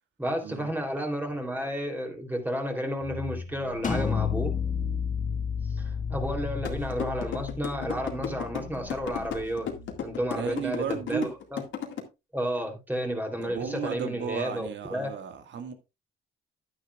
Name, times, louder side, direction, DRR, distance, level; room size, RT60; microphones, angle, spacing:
voice 1, 0.2-4.5 5.8-9.7 10.0-11.6 12.3-15.1, equal, 10° right, 3.2 m, -32 dB
sound 1, 3.0-10.2, left 4 dB, 85° left, 2.6 m, -41 dB
sound 2, 3.8-9.5, left 7 dB, 40° left, 1.9 m, -32 dB
sound 3, 6.7-12.0, left 8 dB, 70° left, 2.1 m, -34 dB
voice 2, 10.4-11.3 13.4-15.7, right 7 dB, 65° right, 1.8 m, -34 dB
11.0 x 10.0 x 2.4 m
cardioid pair, 90°, 20 cm